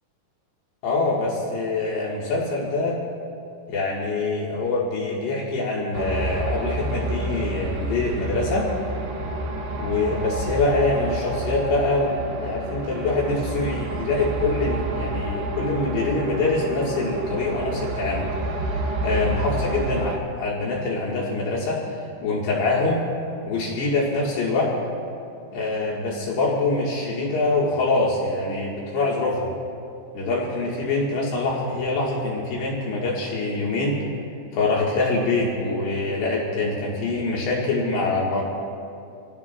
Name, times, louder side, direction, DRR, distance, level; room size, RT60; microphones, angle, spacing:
voice 1, 0.8-3.0 3.7-8.7 9.8-18.2 18.7-21.8 22.2-23.0 23.5-24.7 25.5-29.5 30.1-34.0 34.5-38.4, left 3 dB, 80° left, -5 dB, 4.0 m, -24 dB
sound 1, 5.9-20.2, right 1 dB, 85° right, 4.6 m, -29 dB
27.5 x 17.0 x 2.5 m, 2.7 s
omnidirectional pair, 4.9 m